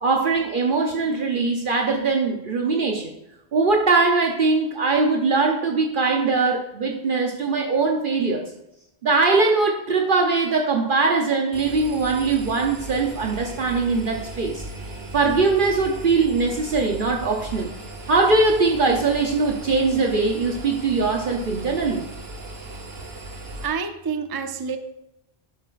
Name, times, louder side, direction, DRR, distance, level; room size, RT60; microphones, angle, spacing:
voice 1, 0.0-3.1 3.5-8.5 9.0-14.6 15.1-17.7 18.1-22.0, right 3 dB, 60° right, 2 dB, 0.9 m, -21 dB
Engine, 11.5-23.7, right 2 dB, 75° right, 1.4 m, -37 dB
voice 2, 23.6-24.8, right 6 dB, 35° right, 8 dB, 0.4 m, -29 dB
10.5 x 7.7 x 2.5 m, 0.87 s
omnidirectional pair, 1.1 m